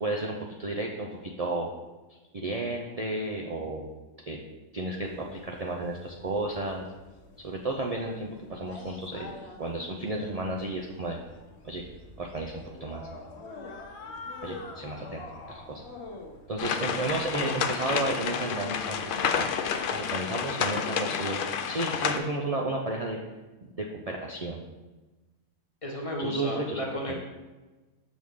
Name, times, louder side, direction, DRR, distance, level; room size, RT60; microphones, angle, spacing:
voice 1, 0.0-1.7 2.3-3.8 4.3-4.4 4.7-6.9 7.4-9.3 9.6-11.2 11.6-11.9 12.2-13.0 14.4-15.8 16.5-19.5 19.9-21.4 21.7-23.2 23.7-24.6 26.2-26.8, right 2 dB, 65° right, 0 dB, 0.3 m, -32 dB
sound 1, 5.0-20.1, left 3 dB, 55° left, 1.1 m, -46 dB
sound 2, 16.6-22.2, left 7 dB, 75° left, 0.5 m, -30 dB
voice 2, 25.8-27.2, equal, 25° left, -1 dB, 1.0 m, -33 dB
6.3 x 6.2 x 3.6 m, 1.2 s
omnidirectional pair, 1.5 m